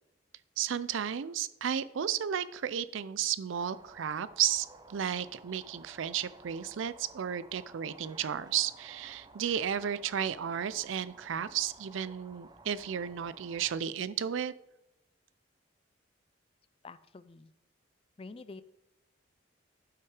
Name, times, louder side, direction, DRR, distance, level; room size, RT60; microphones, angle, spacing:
voice 1, 0.6-14.5, right 9 dB, 75° right, 16 dB, 0.4 m, -33 dB
sound 1, 3.6-13.8, right 2 dB, 20° right, 0.5 m, -55 dB
voice 2, 16.8-17.5 18.2-18.6, left 3 dB, 30° left, 15 dB, 0.3 m, -47 dB
11.5 x 5.8 x 4.8 m, 0.92 s
head